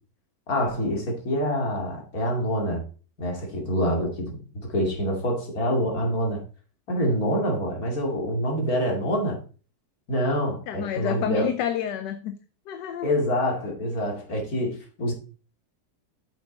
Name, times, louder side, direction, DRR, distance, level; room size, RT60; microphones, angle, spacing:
voice 1, 0.5-2.8 3.2-6.4 6.9-9.4 10.1-11.5 13.0-15.1, equal, 55° left, 2.9 m, -26 dB
voice 2, 10.7-12.3 12.7-13.1, left 9 dB, 75° left, 1.3 m, -29 dB
8.2 x 7.1 x 3.9 m
omnidirectional pair, 1.9 m